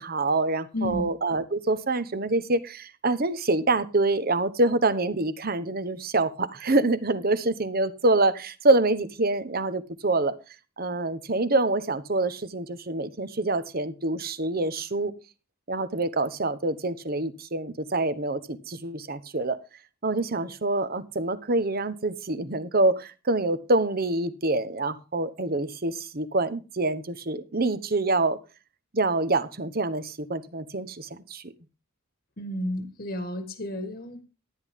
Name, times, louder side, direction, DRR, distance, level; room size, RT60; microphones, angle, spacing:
voice 1, 0.0-10.3 10.8-15.1 15.7-19.6 20.0-28.4 28.9-31.5, right 2 dB, 45° right, 13 dB, 1.1 m, -26 dB
voice 2, 32.4-34.2, left 1 dB, 45° left, 7 dB, 1.5 m, -32 dB
13.0 x 10.0 x 3.6 m, 0.32 s
head